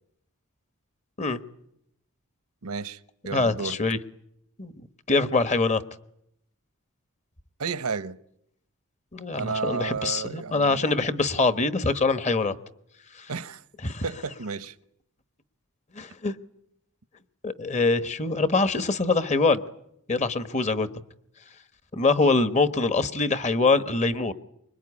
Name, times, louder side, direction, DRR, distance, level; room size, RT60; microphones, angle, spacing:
voice 1, 2.6-3.0 3.2-3.8 7.6-8.2 9.3-10.8 13.3-13.6 14.0-14.7, right 5 dB, 80° right, 1.0 m, -32 dB
voice 2, 3.3-4.0 4.6-4.7 5.1-5.8 9.1-12.5 13.1-13.3 13.8-14.0 15.9-16.3 17.4-19.6 20.1-20.9 21.9-24.3, left 3 dB, 30° left, 1.2 m, -24 dB
25.0 x 22.0 x 9.8 m
head